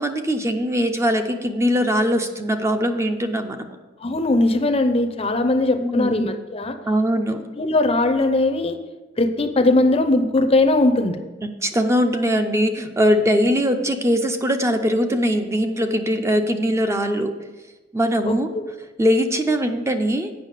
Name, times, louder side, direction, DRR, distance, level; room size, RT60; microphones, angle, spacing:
voice 1, 0.0-3.8 5.8-6.1 6.9-7.4 11.4-17.3 17.9-18.5 19.0-20.3, equal, 15° right, 6 dB, 0.6 m, -21 dB
voice 2, 4.0-6.8 7.6-8.8 9.2-11.2 18.3-18.6, left 2 dB, 30° left, 8 dB, 0.6 m, -19 dB
8.3 x 5.7 x 6.5 m, 1.2 s
head